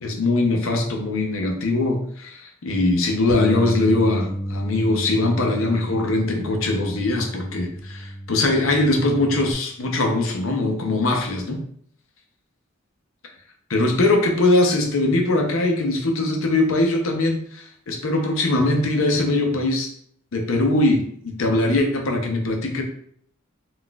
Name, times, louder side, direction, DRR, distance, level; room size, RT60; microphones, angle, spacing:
voice 1, 0.0-11.6 13.7-19.9 20.3-22.8, left 2 dB, 70° left, 3 dB, 0.6 m, -21 dB
Bass guitar, 3.3-9.5, equal, 15° left, 0.5 m, -32 dB
3.9 x 2.4 x 2.2 m, 0.63 s
head